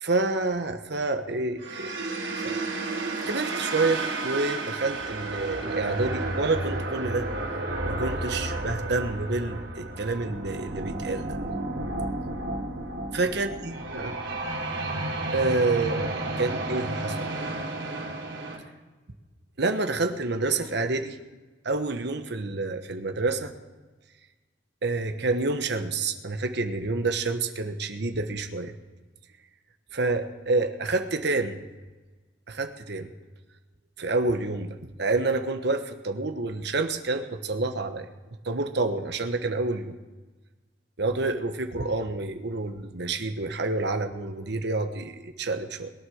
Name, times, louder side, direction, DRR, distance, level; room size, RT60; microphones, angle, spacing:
voice 1, 0.0-2.1 2.4-2.6 3.3-7.3 7.8-11.3 13.1-14.5 14.8-15.0 15.3-17.3 19.6-21.2 21.6-23.5 24.8-28.7 29.9-31.6 32.5-33.1 34.0-38.1 38.4-40.0 41.0-45.9, right 3 dB, 65° right, 7 dB, 1.2 m, -28 dB
sound 1, 1.6-18.6, right 2 dB, 80° right, 3.4 m, -32 dB
21.5 x 9.7 x 6.4 m, 1.2 s
head